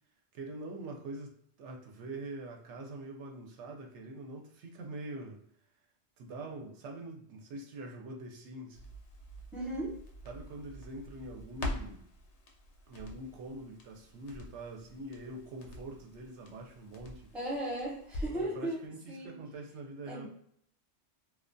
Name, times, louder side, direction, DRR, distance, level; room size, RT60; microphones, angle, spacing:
voice 1, 0.3-5.4 6.2-8.8 10.3-12.0 12.9-17.3 18.3-20.3, right 2 dB, 80° right, 1 dB, 0.9 m, -44 dB
Crackle, 8.7-18.5 18.8-18.9, left 1 dB, 80° left, 0.9 m, -45 dB
voice 2, 9.5-10.0 17.3-18.8 19.1-19.3 20.1-20.3, right 1 dB, ahead, -5 dB, 0.5 m, -36 dB
2.3 x 2.2 x 2.5 m, 0.66 s
omnidirectional pair, 1.2 m